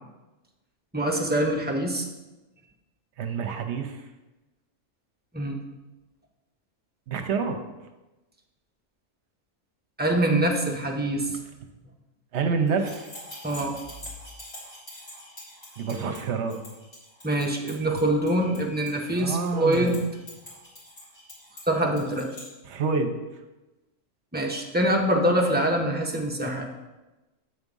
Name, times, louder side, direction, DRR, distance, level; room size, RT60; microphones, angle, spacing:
voice 1, 0.9-2.1 5.3-5.6 10.0-11.3 13.4-13.8 17.2-20.0 21.7-22.3 24.3-26.7, right 1 dB, 10° right, 0 dB, 0.6 m, -24 dB
voice 2, 3.2-4.0 7.1-7.6 12.3-13.1 15.8-16.6 19.2-20.0 22.6-23.2, right 5 dB, 65° right, 6 dB, 0.9 m, -27 dB
sound 1, 12.7-22.5, left 1 dB, 55° left, 2.5 m, -45 dB
8.1 x 3.6 x 5.3 m, 1.1 s
omnidirectional pair, 1.3 m